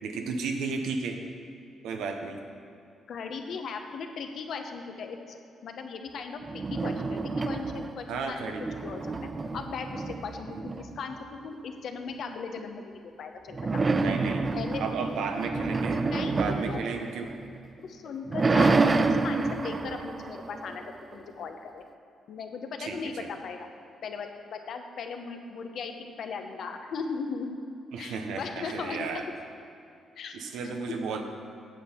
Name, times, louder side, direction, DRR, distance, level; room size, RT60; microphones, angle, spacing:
voice 1, 0.0-1.2 1.8-2.4 8.1-8.6 13.8-14.5 14.8-16.0 16.3-17.4 22.8-23.3 27.9-29.2 30.3-31.2, right 4 dB, 85° right, 4 dB, 0.9 m, -33 dB
voice 2, 3.1-9.0 9.5-11.1 11.4-13.8 14.5-15.2 16.1-16.8 17.8-20.8 21.1-21.8 22.3-23.7 24.0-27.5 28.0-29.2 30.2-30.4 30.6-30.8, left 5 dB, 70° left, 5 dB, 0.9 m, -38 dB
sound 1, 6.4-8.1 8.4-11.2 13.5-17.7 18.1-21.2, right 3 dB, 35° right, 0.4 m, -28 dB
9.2 x 7.6 x 4.4 m, 2.6 s
cardioid pair, 70°, 0 cm